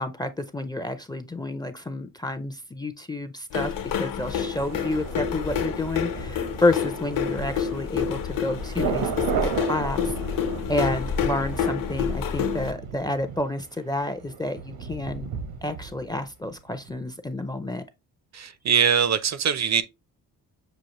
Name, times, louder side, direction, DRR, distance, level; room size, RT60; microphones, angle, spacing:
voice 1, 0.0-3.7 4.0-9.1 9.4-10.1 10.7-15.3 15.6-17.8, left 2 dB, 10° left, 0.4 m, -29 dB
sound 1, 3.5-12.7, left 7 dB, 60° left, 0.8 m, -28 dB
Thunder, 4.7-16.6 16.9-17.0, right 7 dB, 80° right, 0.9 m, -35 dB
voice 2, 18.3-19.8, right 7 dB, 45° right, 0.5 m, -22 dB
6.3 x 2.4 x 2.9 m
cardioid pair, 90°, 37 cm